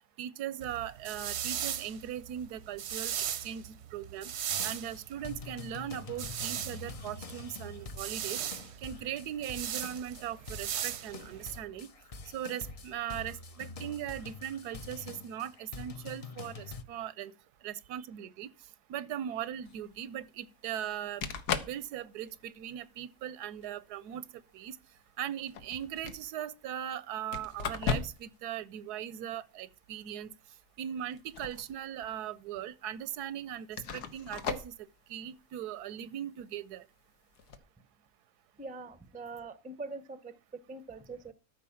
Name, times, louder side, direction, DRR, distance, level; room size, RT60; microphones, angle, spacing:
voice 1, 0.2-3.1 3.4-4.3 4.6-8.4 8.8-11.9 12.3-17.3 17.6-18.5 18.9-21.3 21.6-24.2 24.5-24.8 25.2-30.3 30.8-34.7 35.1-36.8, right 10 dB, 85° right, 1.2 m, -39 dB
sound 1, 0.6-11.6, right 9 dB, 55° right, 0.8 m, -38 dB
sound 2, 4.5-16.8, left 4 dB, 45° left, 0.4 m, -46 dB
sound 3, 19.6-19.8 20.9-21.0 21.2-21.8 22.3-22.6 23.6-23.7 25.4-26.2 27.3-28.3 28.6-28.7 31.0-31.8 32.1-32.2 33.0-33.1 33.7-34.7 37.3-37.6, left 6 dB, 85° left, 1.6 m, -36 dB
voice 2, 38.6-40.3 40.7-41.3, right 3 dB, 10° right, 0.4 m, -43 dB
13.5 x 4.7 x 7.1 m
omnidirectional pair, 1.6 m